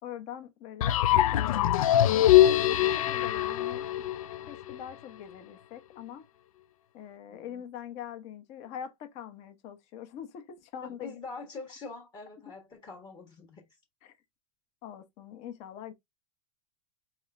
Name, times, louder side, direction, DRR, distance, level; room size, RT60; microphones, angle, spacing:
voice 1, 0.0-2.3 2.7-3.9 4.5-6.2 6.9-11.1 12.5-12.6 14.0-14.1 14.8-15.9, left 9 dB, 40° left, 1.0 m, -43 dB
sound 1, 0.8-4.8, left 12 dB, 85° left, 0.4 m, -23 dB
voice 2, 7.3-7.6 10.8-13.8, left 4 dB, 25° left, 1.2 m, -44 dB
4.4 x 3.5 x 2.5 m
supercardioid pair, 140°, 17 cm